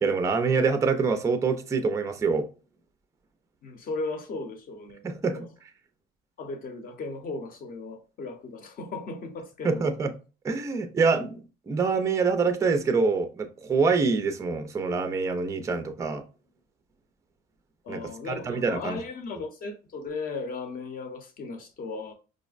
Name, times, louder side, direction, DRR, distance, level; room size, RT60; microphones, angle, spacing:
voice 1, 0.0-2.5 5.0-5.4 9.6-10.1 10.4-11.3 11.7-16.2 17.9-18.0 18.3-19.0, right 4 dB, 15° right, 0.4 m, -25 dB
voice 2, 3.6-5.0 5.3-5.5 6.4-9.9 17.8-22.1, left 3 dB, 45° left, 0.8 m, -36 dB
4.9 x 2.0 x 2.4 m
cardioid pair, 125°, 21 cm